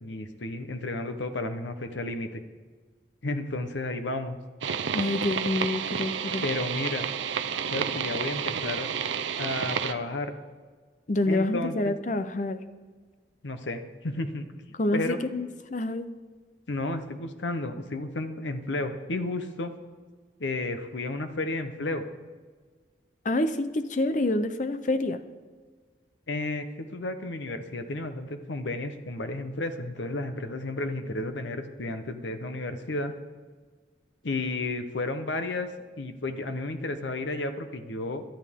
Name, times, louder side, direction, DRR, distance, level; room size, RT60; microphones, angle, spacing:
voice 1, 0.0-2.4 3.2-4.4 6.4-7.1 7.7-8.9 9.4-10.3 11.3-12.0 13.4-14.5 14.9-15.2 16.7-19.7 20.4-22.0 26.3-33.1 34.2-35.7 36.0-38.2, left 2 dB, 75° left, 8 dB, 0.9 m, -32 dB
sound 1, 4.6-9.9, right 7 dB, 80° right, 0.6 m, -30 dB
voice 2, 4.9-6.4 11.1-12.6 14.8-16.1 23.2-25.2, left 2 dB, 40° left, 10 dB, 0.6 m, -27 dB
18.0 x 11.5 x 3.6 m, 1.5 s
head